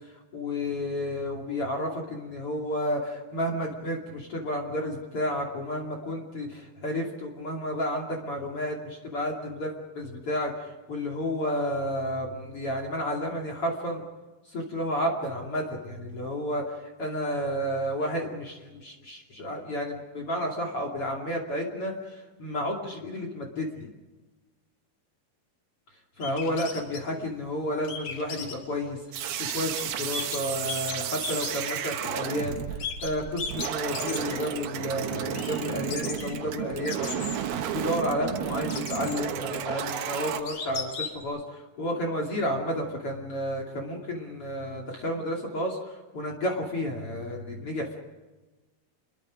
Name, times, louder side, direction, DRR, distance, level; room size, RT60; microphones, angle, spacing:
voice 1, 0.3-14.0 14.5-16.6 17.0-23.9 26.2-48.0, equal, 40° left, 1 dB, 3.2 m, -31 dB
sound 1, 26.2-27.0 27.8-28.5 29.5-29.8 30.1-32.2 32.8-34.6 34.8-34.9 35.3-35.6 35.9-38.2 38.7-39.4 39.9-40.0 40.5-41.2, left 5 dB, 60° left, 4.1 m, -36 dB
sound 2, 29.1-40.4, right 9 dB, 75° right, 3.1 m, -33 dB
27.5 x 22.5 x 5.1 m, 1.2 s
omnidirectional pair, 4.6 m